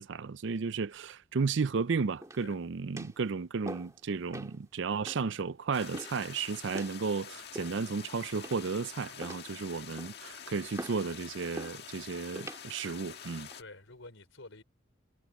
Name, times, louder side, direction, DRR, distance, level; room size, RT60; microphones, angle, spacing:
voice 1, 0.0-13.5, right 5 dB, 60° right, 0.5 m, -33 dB
sound 1, 2.2-2.6 3.0-3.2 3.6-4.0 4.3-4.6 5.0-5.2 5.9-6.2 6.7-7.0 7.5-8.0 8.4-8.8 9.2-9.5 10.0-10.3 10.8-11.0 11.6-11.8 12.3-12.6 13.3-13.6, right 1 dB, 15° right, 2.0 m, -43 dB
sound 2, 5.7-13.6, left 8 dB, 50° left, 1.8 m, -47 dB
voice 2, 13.4-14.6, left 2 dB, 70° left, 4.1 m, -50 dB
head